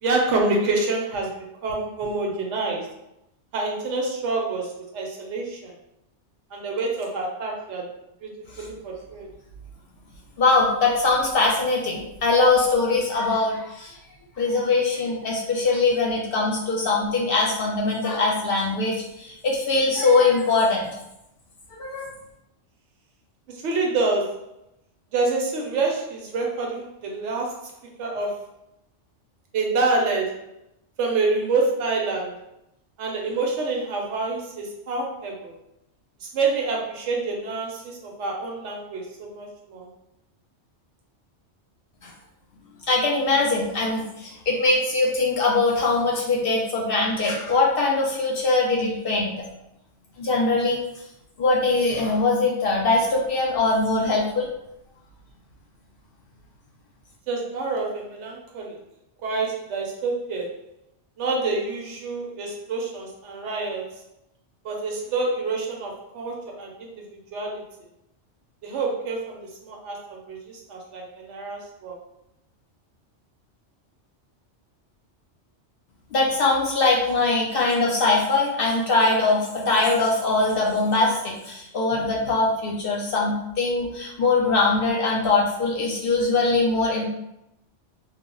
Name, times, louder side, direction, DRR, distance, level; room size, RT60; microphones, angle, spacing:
voice 1, 0.0-2.9 3.5-5.7 6.5-7.9 8.2-8.3 8.6-9.3 23.5-24.4 25.1-27.7 28.0-28.4 29.5-30.5 31.0-32.4 33.0-35.6 36.2-39.9 57.3-58.8 59.2-60.6 61.2-63.9 64.6-67.7 68.6-72.0, right 3 dB, 75° right, 0 dB, 1.0 m, -27 dB
voice 2, 10.4-14.0 14.4-20.9 21.7-22.1 42.0-42.1 42.9-49.3 50.2-50.8 51.4-54.5 76.1-87.0, left 3 dB, 60° left, -2 dB, 0.7 m, -22 dB
2.3 x 2.0 x 3.7 m, 0.85 s
omnidirectional pair, 1.2 m